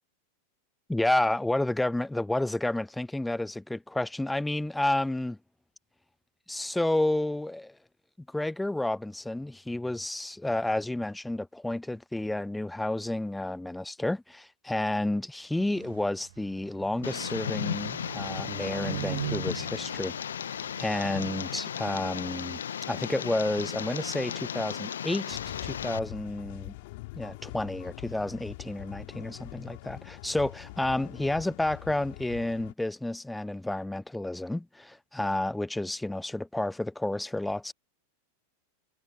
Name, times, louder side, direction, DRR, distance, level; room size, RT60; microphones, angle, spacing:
voice 1, 0.9-5.4 6.5-7.8 8.3-20.1 20.8-22.6 22.9-26.8 27.2-37.7, left 1 dB, 5° left, 0.4 m, -30 dB
sound 1, 15.6-21.1, right 14 dB, 55° right, 1.5 m, -41 dB
Tick, 17.0-26.0, left 8 dB, 65° left, 1.3 m, -35 dB
sound 2, 25.3-32.7, left 22 dB, 50° left, 4.5 m, -43 dB
figure-of-eight pair, 90°, 0 cm